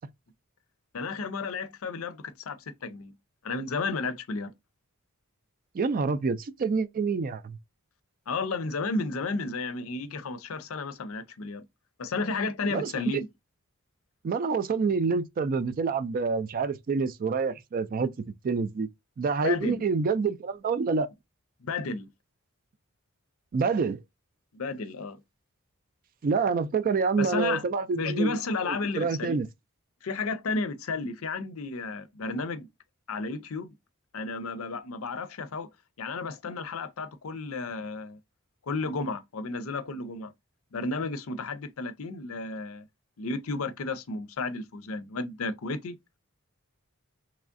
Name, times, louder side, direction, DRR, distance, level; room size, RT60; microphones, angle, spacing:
voice 1, 0.9-3.1 3.4-4.5 8.3-11.6 12.0-13.3 19.4-19.8 21.6-22.1 24.5-25.2 27.2-27.6 27.9-29.4 30.0-32.7 33.1-33.7 34.1-35.7 36.0-38.2 38.6-40.3 40.7-42.8 43.2-46.0, left 3 dB, 70° left, 0.5 m, -32 dB
voice 2, 5.7-7.6 12.7-13.1 14.2-18.1 18.4-18.9 19.2-21.1 23.5-24.0 26.2-28.4 28.6-29.5, right 4 dB, 40° right, 0.3 m, -27 dB
3.4 x 3.1 x 2.5 m
head